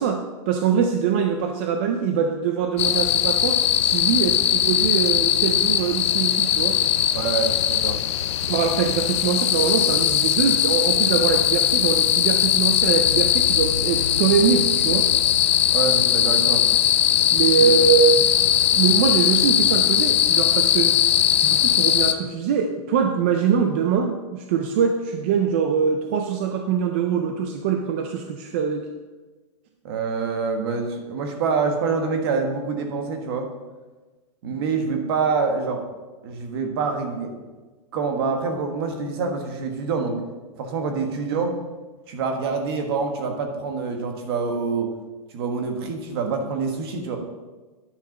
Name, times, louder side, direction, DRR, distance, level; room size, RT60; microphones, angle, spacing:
voice 1, 0.0-6.8 8.4-15.1 17.3-18.2 18.5-20.9 21.4-28.8, right 7 dB, 20° right, 4 dB, 0.3 m, -23 dB
sound 1, 2.8-22.1, left 10 dB, 45° left, 0.5 m, -20 dB
voice 2, 7.1-8.0 15.7-16.6 17.6-17.7 29.8-33.5 34.4-35.8 36.2-37.3 37.9-40.2 40.6-41.6 42.1-44.9 45.3-47.2, right 5 dB, 40° right, 4 dB, 1.4 m, -26 dB
9.9 x 6.7 x 5.2 m, 1.3 s
supercardioid pair, 175°, 20 cm